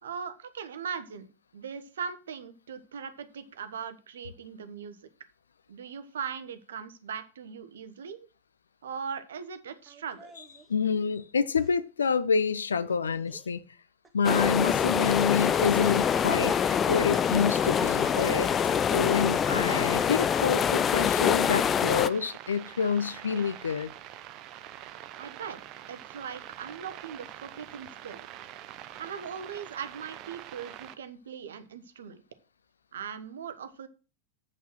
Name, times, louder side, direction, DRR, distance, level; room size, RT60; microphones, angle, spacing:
voice 1, 0.0-1.3 1.5-5.0 5.7-8.3 8.8-10.3 25.2-25.6 25.9-28.2 29.0-32.2 32.9-33.9, right 7 dB, 65° right, 1.1 m, -39 dB
Laughter, 9.9-10.7 11.4-11.8 12.0-12.1 12.9-13.5 14.0-14.1 14.5-14.9 15.3-15.7 16.1-20.9, right 3 dB, 15° right, 1.7 m, -46 dB
voice 2, 10.7-13.6 14.1-18.5 18.9-23.9, left 6 dB, 70° left, 0.6 m, -27 dB
sound 1, 14.2-22.1, left 8 dB, 25° left, 0.4 m, -25 dB
sound 2, 14.9-30.9, right 12 dB, 40° right, 0.8 m, -45 dB
8.3 x 5.5 x 6.1 m
figure-of-eight pair, 90°, 0 cm